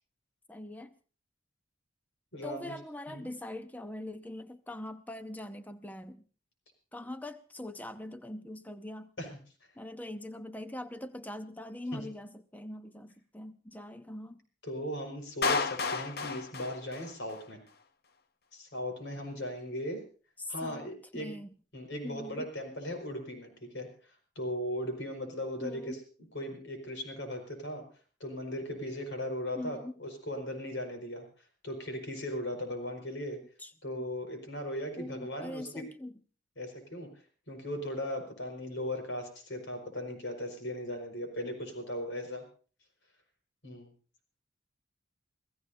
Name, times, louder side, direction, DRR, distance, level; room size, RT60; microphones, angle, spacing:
voice 1, 0.5-0.9 2.4-6.2 6.9-9.1 9.8-14.4 20.4-21.5 22.0-22.5 25.6-26.0 29.6-29.9 33.6-34.1 35.0-36.1, left 1 dB, 10° left, 10 dB, 0.7 m, -42 dB
voice 2, 2.3-2.7 3.1-3.3 9.2-9.4 11.9-12.0 14.6-17.6 18.5-20.0 20.5-21.3 21.7-23.9 24.4-26.0 26.3-27.8 28.2-31.2 31.6-33.4 33.8-35.7 36.6-37.1 37.5-42.4 43.6-43.9, equal, 70° left, 4 dB, 5.3 m, -38 dB
Clapping, 15.4-17.4, left 4 dB, 50° left, 0.7 m, -32 dB
27.5 x 16.0 x 2.7 m, 0.39 s
head